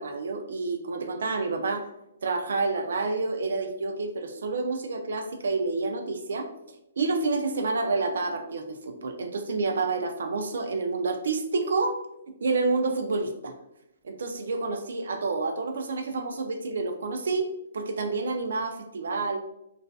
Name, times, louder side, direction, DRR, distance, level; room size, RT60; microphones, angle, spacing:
voice 1, 0.0-1.9 2.2-6.5 7.0-12.0 12.4-13.5 14.0-19.4, right 3 dB, 70° right, 6 dB, 0.4 m, -29 dB
2.4 x 2.3 x 2.3 m, 0.84 s
hypercardioid pair, 180°, 0 cm